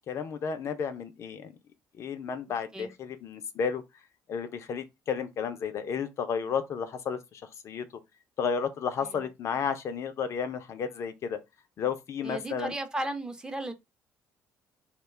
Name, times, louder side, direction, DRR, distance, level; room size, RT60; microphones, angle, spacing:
voice 1, 0.1-1.5 2.0-3.8 4.3-7.9 8.4-11.4 11.8-12.7, left 6 dB, 55° left, 0.4 m, -32 dB
voice 2, 12.2-13.7, right 1 dB, 15° right, 0.6 m, -35 dB
2.3 x 2.2 x 3.2 m
supercardioid pair, 80°, 6 cm